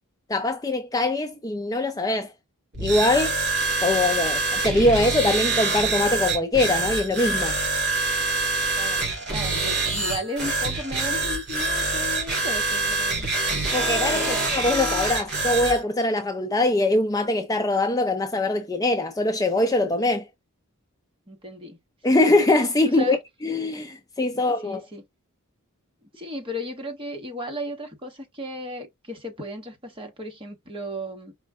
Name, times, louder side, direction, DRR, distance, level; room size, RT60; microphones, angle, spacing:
voice 1, 0.3-2.3 2.8-3.4 3.8-7.5 13.7-20.3 22.0-23.2 23.4-24.8, left 2 dB, 15° left, 0.6 m, -22 dB
sound 1, 2.7-15.8, right 3 dB, 50° right, 3.1 m, -25 dB
voice 2, 8.8-13.3 14.1-14.5 21.3-21.8 22.1-22.4 22.8-23.2 24.6-25.0 26.2-31.3, equal, 25° right, 1.5 m, -35 dB
5.3 x 2.4 x 3.5 m
head